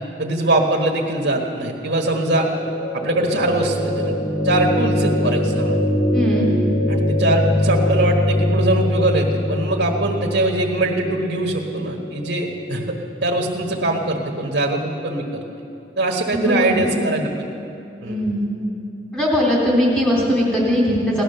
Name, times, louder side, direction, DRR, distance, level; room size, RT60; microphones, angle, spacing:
voice 1, 0.2-2.5 2.9-4.2 4.4-5.8 6.9-15.4 16.0-17.4 18.0-18.2, right 2 dB, 80° right, 1 dB, 1.4 m, -22 dB
sound 1, 2.0-14.1, left 1 dB, 75° left, 2.6 m, -23 dB
voice 2, 6.1-6.5 16.3-16.9 18.0-18.4 19.1-21.2, equal, 5° left, -5 dB, 3.1 m, -19 dB
17.5 x 12.0 x 6.8 m, 2.7 s
head